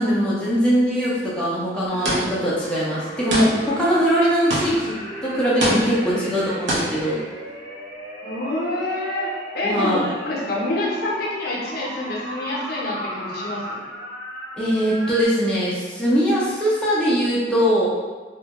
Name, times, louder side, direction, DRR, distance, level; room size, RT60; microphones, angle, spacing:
voice 1, 0.0-7.2 9.6-10.1 14.6-17.9, equal, 5° left, -8 dB, 0.4 m, -21 dB
sound 1, 1.9-15.3, equal, 35° right, 1.1 m, -36 dB
sound 2, 2.0-2.5 3.3-3.9 4.5-5.0 5.6-6.2 6.7-7.1, right 1 dB, 75° right, 0.6 m, -25 dB
voice 2, 5.9-6.3 8.2-13.8, left 1 dB, 55° left, -4 dB, 0.6 m, -27 dB
2.2 x 2.1 x 2.8 m, 1.4 s
head